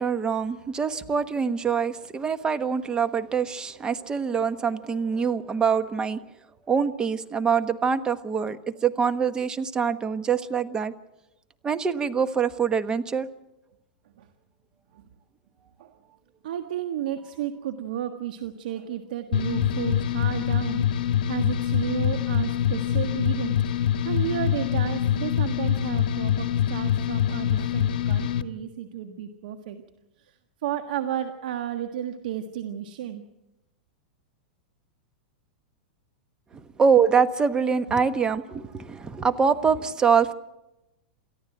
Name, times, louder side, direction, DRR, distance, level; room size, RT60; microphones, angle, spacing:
voice 1, 0.0-6.2 6.7-10.9 11.6-13.3 36.8-40.3, right 6 dB, 15° right, 10 dB, 1.2 m, -24 dB
voice 2, 16.4-29.8 30.2-30.4 30.6-33.2, right 10 dB, 70° right, 7 dB, 1.5 m, -33 dB
sound 1, 19.3-28.4, left 10 dB, 70° left, 1.3 m, -25 dB
28.5 x 14.0 x 7.8 m, 0.95 s
hypercardioid pair, 130°, 5 cm